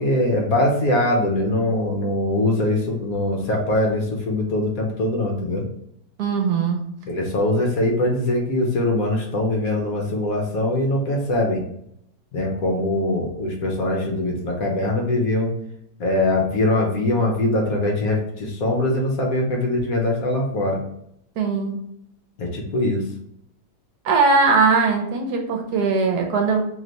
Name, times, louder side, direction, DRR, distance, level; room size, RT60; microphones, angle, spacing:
voice 1, 0.0-5.6 7.1-11.6 12.3-15.5 16.0-20.8 22.4-23.1, left 1 dB, 60° left, 0 dB, 1.1 m, -22 dB
voice 2, 6.2-6.8 21.4-21.8 24.0-26.6, right 4 dB, 70° right, 2 dB, 1.2 m, -20 dB
3.2 x 3.1 x 3.9 m, 0.73 s
omnidirectional pair, 1.8 m